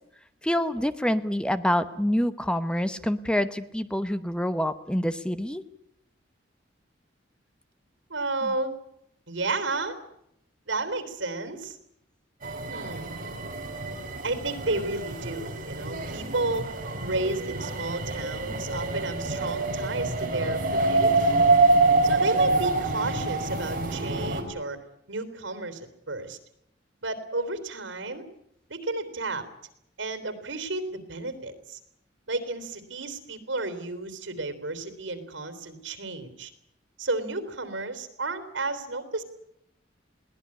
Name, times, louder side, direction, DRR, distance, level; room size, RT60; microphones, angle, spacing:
voice 1, 0.4-5.6, equal, 5° left, 12 dB, 0.9 m, -26 dB
voice 2, 8.1-8.7 9.3-10.0 10.7-11.8 12.7-13.1 14.2-16.7 17.0-21.3 22.0-24.8 25.1-26.4 27.0-28.2 28.7-29.5 30.0-31.8 32.3-36.5 37.0-39.2, right 2 dB, 85° right, 12 dB, 3.5 m, -32 dB
sound 1, 12.4-24.4, right 3 dB, 45° right, 4.1 m, -26 dB
22.0 x 18.0 x 9.7 m, 0.77 s
head